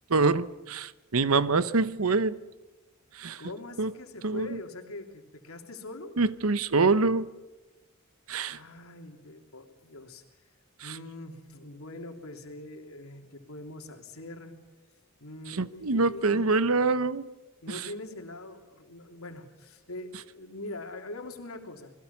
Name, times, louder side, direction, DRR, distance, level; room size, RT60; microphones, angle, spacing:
voice 1, 0.1-2.4 3.1-3.4 3.8-3.9 4.2-4.6 6.2-7.3 8.3-8.6 10.8-11.0 15.5-17.3 17.7-17.9, right 3 dB, 80° right, 0.9 m, -25 dB
voice 2, 3.4-6.2 8.5-10.4 10.8-14.5 15.2-16.4 17.6-21.9, left 2 dB, 85° left, 3.2 m, -43 dB
27.5 x 20.5 x 7.1 m
head